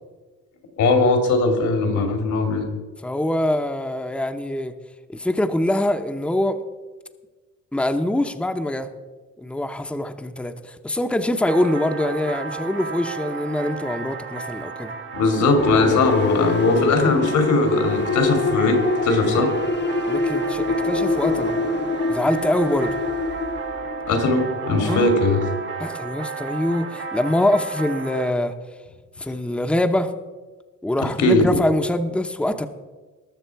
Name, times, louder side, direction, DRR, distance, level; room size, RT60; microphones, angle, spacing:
voice 1, 0.8-2.7 15.1-19.5 24.1-25.4 31.2-31.5, left 2 dB, 75° left, 5 dB, 2.4 m, -19 dB
voice 2, 3.0-4.7 5.1-6.6 7.7-8.9 9.4-14.9 20.1-21.6 22.1-23.0 24.8-25.1 25.8-28.5 29.2-30.1 30.8-32.7, left 1 dB, 5° left, 7 dB, 0.8 m, -24 dB
sound 1, 11.5-28.3, right 5 dB, 40° right, 1.2 m, -33 dB
sound 2, 15.6-24.3, left 4 dB, 35° left, 0.8 m, -25 dB
19.5 x 6.7 x 4.6 m, 1.3 s
cardioid pair, 90°, 30 cm